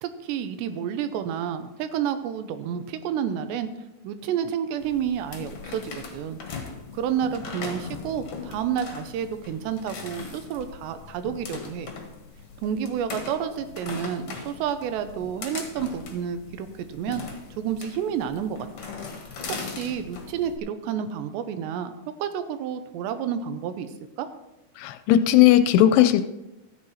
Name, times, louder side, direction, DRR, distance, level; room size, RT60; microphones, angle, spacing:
voice 1, 0.0-3.7 4.0-6.4 6.9-11.9 12.6-17.2 17.6-18.9 19.5-23.9 24.2-24.3, right 8 dB, 85° right, 10 dB, 3.0 m, -30 dB
sound 1, 4.8-20.6, left 5 dB, 50° left, 1.7 m, -39 dB
voice 2, 24.8-26.2, left 12 dB, 80° left, 10 dB, 2.5 m, -17 dB
13.5 x 9.6 x 4.2 m, 0.95 s
omnidirectional pair, 4.9 m